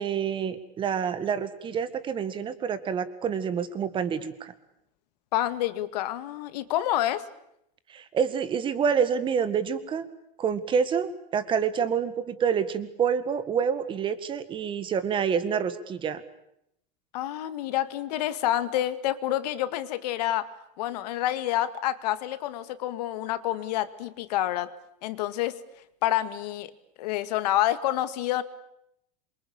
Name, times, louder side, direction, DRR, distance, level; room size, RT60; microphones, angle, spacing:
voice 1, 0.0-4.5 7.9-10.1 10.4-16.2, right 7 dB, 25° right, 13 dB, 1.8 m, -27 dB
voice 2, 5.3-7.3 17.1-20.5 20.8-24.7 25.0-25.6 26.0-26.7 27.0-28.4, left 13 dB, 75° left, 12 dB, 2.1 m, -28 dB
27.0 x 24.0 x 8.7 m, 0.78 s
supercardioid pair, 160°, 21 cm